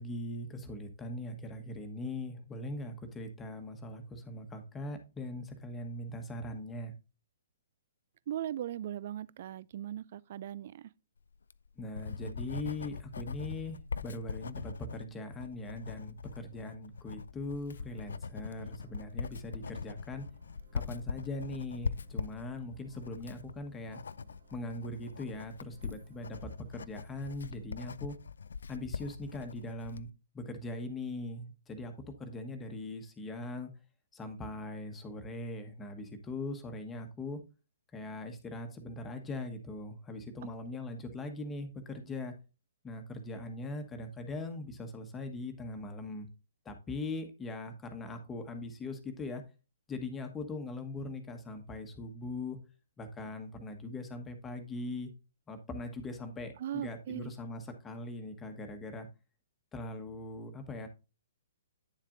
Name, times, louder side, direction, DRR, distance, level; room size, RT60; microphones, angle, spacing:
voice 1, 0.0-6.9 11.8-20.3 20.7-24.0 24.5-28.2 28.7-30.1 30.3-33.7 34.1-37.4 37.9-42.3 42.8-46.3 46.6-49.4 49.9-52.6 53.0-55.1 55.5-59.1 59.7-60.9, left 2 dB, 15° left, 1.3 m, -41 dB
voice 2, 8.3-10.9 56.6-57.3, right 11 dB, 50° right, 0.3 m, -38 dB
Writing, 11.3-30.1, left 5 dB, 75° left, 0.3 m, -42 dB
sound 1, 17.8-27.6, right 1 dB, 70° right, 2.4 m, -60 dB
9.4 x 7.3 x 2.5 m
figure-of-eight pair, 130°, 0 cm